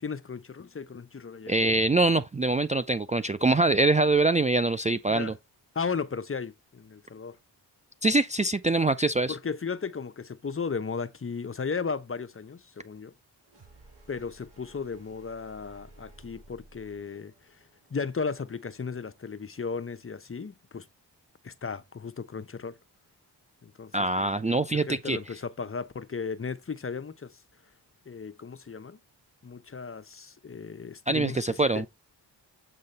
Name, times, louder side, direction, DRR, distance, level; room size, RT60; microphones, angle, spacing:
voice 1, 0.0-1.6 5.1-5.3 5.7-7.4 9.3-13.1 14.1-17.3 17.9-20.9 21.4-22.8 23.6-23.9 24.2-27.4 28.1-29.0 29.4-31.9, left 5 dB, 30° left, 0.8 m, -35 dB
voice 2, 1.5-5.3 8.0-9.4 23.9-25.2 31.1-31.9, right 2 dB, 15° right, 0.4 m, -24 dB
sound 1, 13.4-19.3, right 1 dB, 60° right, 5.0 m, -56 dB
7.6 x 3.9 x 4.0 m
supercardioid pair, 45°, 44 cm